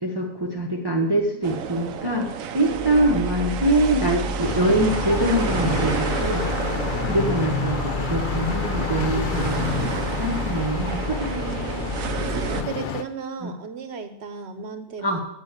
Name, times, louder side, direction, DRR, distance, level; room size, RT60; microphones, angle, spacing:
voice 1, 0.0-2.3 2.5-6.5 7.1-11.3 13.4-13.5 15.0-15.2, right 1 dB, 20° right, 0 dB, 1.0 m, -24 dB
sound 1, 1.4-12.6, right 7 dB, 85° right, 1.2 m, -31 dB
sound 2, 2.6-12.6, left 1 dB, 10° left, 1.3 m, -32 dB
voice 2, 2.6-3.1 6.9-7.3 11.2-11.9 12.2-12.4 12.7-15.2, right 5 dB, 55° right, 8 dB, 1.2 m, -35 dB
sound 3, 4.4-13.0, left 6 dB, 50° left, 0.6 m, -29 dB
8.8 x 6.0 x 8.0 m, 0.84 s
omnidirectional pair, 1.4 m